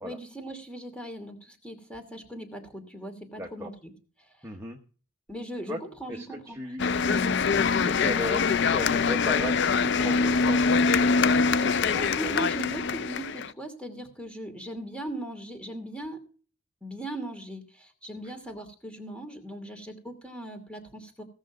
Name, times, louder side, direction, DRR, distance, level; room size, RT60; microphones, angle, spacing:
voice 1, 0.0-3.9 5.3-6.6 11.9-16.3 16.8-21.2, right 1 dB, 5° left, 5 dB, 2.5 m, -39 dB
voice 2, 3.4-3.7 4.4-4.8 5.7-5.8 6.1-6.8 7.4-12.4 18.2-18.3, left 1 dB, 10° right, 1 dB, 1.1 m, -37 dB
sound 1, 6.8-13.5, left 5 dB, 55° left, 0.5 m, -24 dB
17.0 x 6.3 x 6.0 m, 0.39 s
head